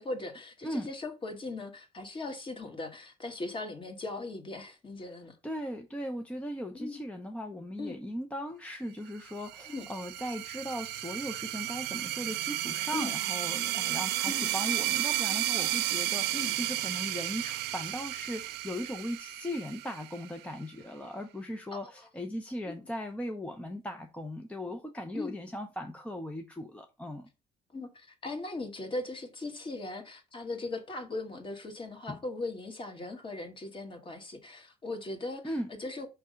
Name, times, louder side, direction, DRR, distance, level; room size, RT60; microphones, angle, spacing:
voice 1, 0.0-5.4 6.7-7.0 7.8-8.0 9.7-9.8 12.9-13.2 14.3-14.5 16.3-16.5 21.7-21.8 22.6-22.7 25.1-25.4 27.7-36.1, left 2 dB, 30° left, 1.5 m, -39 dB
voice 2, 5.4-27.3 32.1-32.2 35.4-35.7, equal, 5° left, 0.6 m, -38 dB
sound 1, 9.3-20.5, right 14 dB, 85° right, 0.6 m, -33 dB
5.5 x 3.4 x 5.0 m
cardioid pair, 110°, 17 cm